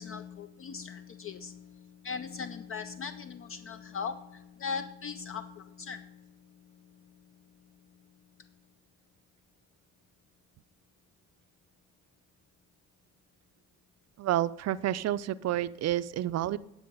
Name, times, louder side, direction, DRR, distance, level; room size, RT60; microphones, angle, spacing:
voice 1, 0.0-6.2, left 6 dB, 45° left, 11 dB, 0.5 m, -39 dB
voice 2, 14.2-16.6, right 13 dB, 60° right, 15 dB, 0.4 m, -29 dB
11.5 x 4.9 x 5.3 m, 0.88 s
cardioid pair, 90°, 30 cm